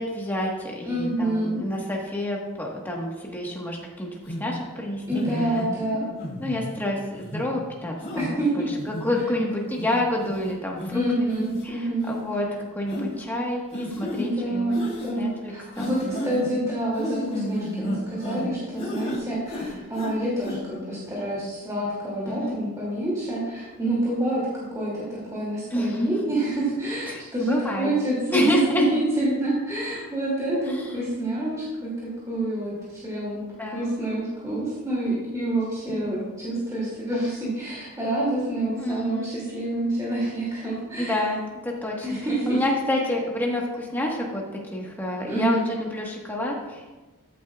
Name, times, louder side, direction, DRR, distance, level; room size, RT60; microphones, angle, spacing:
voice 1, 0.0-5.0 5.8-6.1 6.4-11.0 11.6-12.5 12.7-14.8 15.1-16.1 22.2-22.6 25.7-26.1 27.1-27.9 28.3-28.8 30.7-30.9 33.4-33.9 35.9-36.3 38.8-39.3 41.0-42.1 42.5-44.4 44.7-47.0, left 1 dB, 10° left, -2 dB, 1.3 m, -28 dB
voice 2, 0.9-1.6 5.1-6.1 8.2-8.7 10.9-12.1 14.1-25.0 25.3-31.9 32.3-41.2 42.0-42.6 45.3-45.7, right 1 dB, 15° right, -7 dB, 2.4 m, -27 dB
sound 1, 4.3-4.4 5.1-5.7 6.2-6.7 7.2-7.4 8.0-8.3 8.8-9.2 9.8-9.9 10.2-10.4 10.8-10.9 11.3-11.6 12.0-12.2 12.9-13.1 13.7-14.2 14.7-15.1 15.8-16.5 17.0-18.5 18.8-19.2 19.5-20.1 20.4-20.6, equal, 30° left, 3.2 m, -32 dB
13.5 x 8.3 x 2.3 m, 1.2 s
head